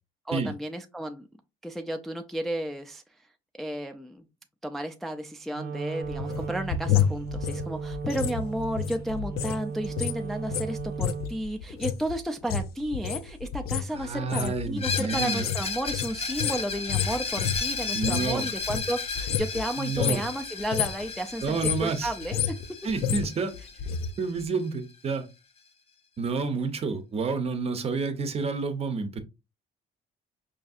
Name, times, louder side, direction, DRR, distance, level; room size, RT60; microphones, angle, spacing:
voice 1, 0.3-1.3 1.6-3.0 3.5-4.2 4.6-22.5, right 1 dB, ahead, 0.3 m, -33 dB
Wind instrument woodwind instrument, 5.5-11.5, right 5 dB, 75° right, 0.7 m, -36 dB
sound 1, 6.0-9.6 9.8-18.3 18.6-19.7 19.9-20.3 20.6-21.1 21.4-24.1 24.4-24.5, left 9 dB, 65° left, 0.4 m, -30 dB
voice 2, 13.9-15.5 17.9-18.5 19.8-20.3 21.4-22.1 22.8-23.5 24.2-25.3 26.2-29.2, right 4 dB, 35° right, 0.6 m, -29 dB
Screech, 14.8-24.4, left 4 dB, 35° left, 0.7 m, -34 dB
5.0 x 2.6 x 2.4 m
cardioid pair, 110°, 17 cm